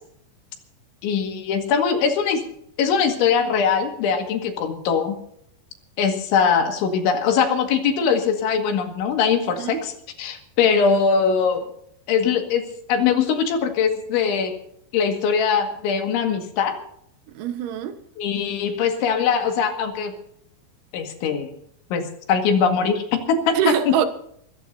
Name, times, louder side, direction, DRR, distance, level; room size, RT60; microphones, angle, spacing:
voice 1, 1.0-2.4 2.8-5.2 6.0-9.9 10.2-11.7 12.1-12.6 12.9-14.6 14.9-16.8 18.2-20.1 20.9-21.5 21.9-23.9, left 6 dB, 85° left, 4.4 m, -21 dB
voice 2, 17.4-18.0 23.6-24.1, right 9 dB, 85° right, 3.7 m, -23 dB
24.5 x 14.5 x 2.8 m
omnidirectional pair, 5.3 m